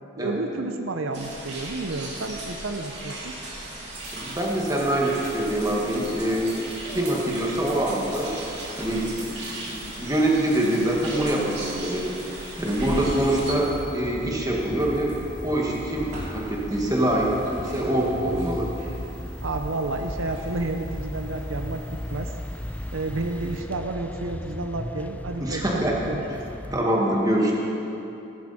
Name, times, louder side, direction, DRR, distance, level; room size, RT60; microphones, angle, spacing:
voice 1, 0.2-3.3 19.4-22.3 22.9-26.4, right 2 dB, 80° right, 6 dB, 0.8 m, -31 dB
sound 1, 1.1-13.5, right 1 dB, 55° right, 2.9 m, -37 dB
sound 2, 3.9-23.6, right 2 dB, 40° right, 3.3 m, -47 dB
voice 2, 4.1-6.6 6.9-8.3 8.8-9.4 9.6-12.1 12.6-15.1 15.4-18.7 25.4-25.9 26.7-27.5, right 1 dB, 20° right, -2 dB, 1.9 m, -24 dB
sound 3, 12.9-26.8, left 1 dB, 5° left, 0.4 m, -36 dB
16.0 x 13.5 x 4.3 m, 2.9 s
head